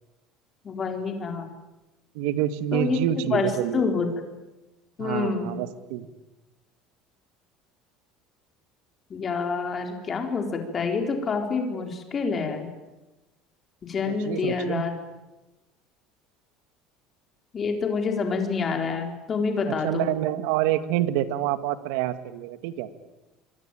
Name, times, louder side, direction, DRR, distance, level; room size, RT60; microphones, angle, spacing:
voice 1, 0.6-1.5 2.7-3.0 3.3-3.5 3.7-4.1 5.0-5.5 9.1-12.7 13.8-14.9 17.5-20.1, left 5 dB, 25° left, 4 dB, 4.1 m, -27 dB
voice 2, 2.1-3.8 5.0-6.1 14.1-14.8 19.7-22.9, right 12 dB, 80° right, 11 dB, 2.0 m, -27 dB
26.0 x 23.5 x 9.1 m, 1.1 s
cardioid pair, 165°, 0 cm